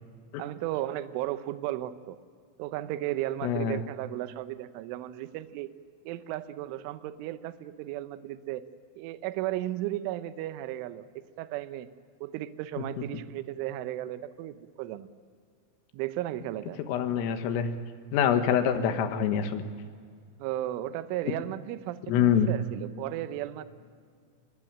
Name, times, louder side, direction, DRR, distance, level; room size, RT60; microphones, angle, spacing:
voice 1, 0.4-2.2 2.6-5.7 6.1-8.7 9.0-11.9 12.2-15.1 15.9-16.8 20.4-23.7, right 14 dB, 80° right, 11 dB, 3.2 m, -35 dB
voice 2, 3.4-3.8 16.9-17.7 18.1-19.6 22.1-22.5, left 8 dB, 80° left, 7 dB, 4.1 m, -25 dB
24.5 x 22.0 x 9.0 m, 2.1 s
omnidirectional pair, 6.0 m